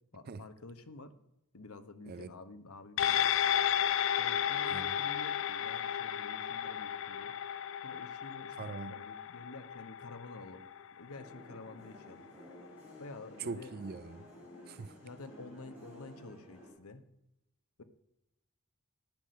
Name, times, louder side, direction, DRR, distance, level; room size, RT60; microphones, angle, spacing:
voice 1, 0.1-1.2 1.5-3.3 4.2-7.4 7.8-12.3 13.0-13.7 15.0-17.1 17.8-17.9, left 2 dB, 85° left, 10 dB, 1.1 m, -49 dB
sound 1, 3.0-11.7 12.0-12.1, left 10 dB, 60° left, 0.5 m, -33 dB
voice 2, 4.6-5.0 8.6-9.0 13.4-14.3 14.7-15.0, right 4 dB, 45° right, 15 dB, 0.5 m, -42 dB
sound 2, 11.1-16.7, equal, 10° right, 6.4 m, -53 dB
12.0 x 9.5 x 6.4 m, 0.87 s
head